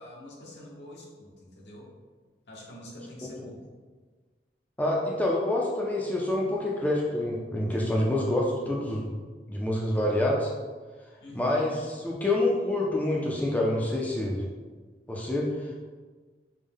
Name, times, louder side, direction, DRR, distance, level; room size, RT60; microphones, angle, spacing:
voice 1, 0.0-1.9 2.5-3.7 5.1-5.2 11.2-11.7, equal, 80° left, -3 dB, 1.0 m, -46 dB
voice 2, 4.8-9.1 9.5-10.5 11.3-14.5 15.1-15.7, left 1 dB, 10° left, -3 dB, 0.4 m, -27 dB
5.3 x 2.1 x 3.5 m, 1.4 s
head